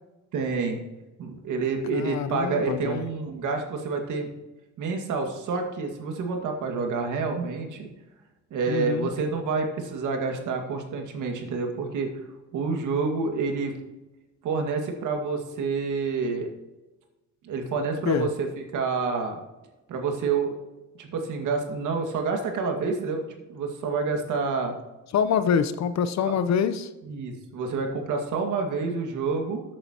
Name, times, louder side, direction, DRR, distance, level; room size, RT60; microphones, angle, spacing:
voice 1, 0.3-0.8 1.2-4.3 4.8-7.9 8.5-12.1 12.5-13.7 14.4-16.5 17.4-19.4 19.9-20.5 21.0-23.2 23.5-24.7 26.3-26.4 27.0-29.6, right 4 dB, 80° right, 3 dB, 2.1 m, -28 dB
voice 2, 1.9-3.1 8.7-9.1 18.0-18.3 25.1-26.9, left 7 dB, 65° left, 12 dB, 0.9 m, -25 dB
13.5 x 8.8 x 3.0 m, 1.1 s
cardioid pair, 90°, 30 cm